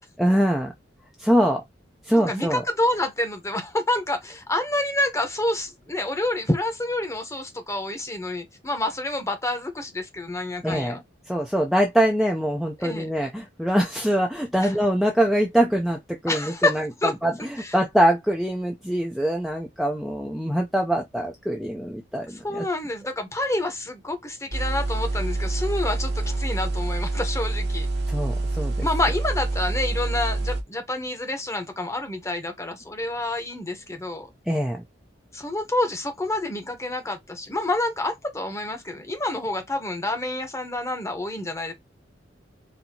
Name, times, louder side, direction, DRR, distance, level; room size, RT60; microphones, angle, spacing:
voice 1, 0.2-0.7 1.2-1.6 2.1-2.6 10.6-11.0 11.3-16.8 17.2-17.3 17.7-22.6 28.1-28.9 34.5-34.8, right 1 dB, ahead, 0.5 m, -23 dB
voice 2, 2.1-11.0 12.8-13.1 14.6-14.7 16.3-17.1 17.4-17.8 22.3-27.9 28.8-34.3 35.3-41.7, left 1 dB, 15° left, 0.9 m, -28 dB
sound 1, 24.5-30.6, right 2 dB, 60° right, 1.1 m, -27 dB
4.2 x 2.7 x 2.8 m
head